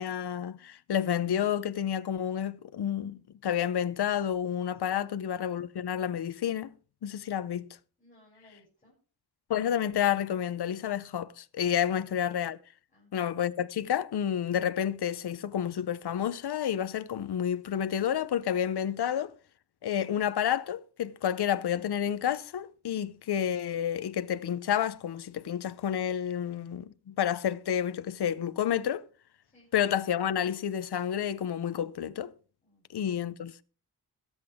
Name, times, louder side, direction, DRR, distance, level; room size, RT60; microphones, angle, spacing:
voice 1, 0.0-6.7 7.0-7.7 9.5-12.6 13.1-19.3 19.8-29.0 29.7-32.3 32.9-33.6, left 9 dB, 70° left, 0.7 m, -30 dB
voice 2, 8.0-8.9 12.9-13.3 29.4-29.7 32.6-33.0, left 1 dB, 20° left, 7.1 m, -61 dB
22.5 x 8.0 x 3.5 m
wide cardioid pair, 170°, 40 cm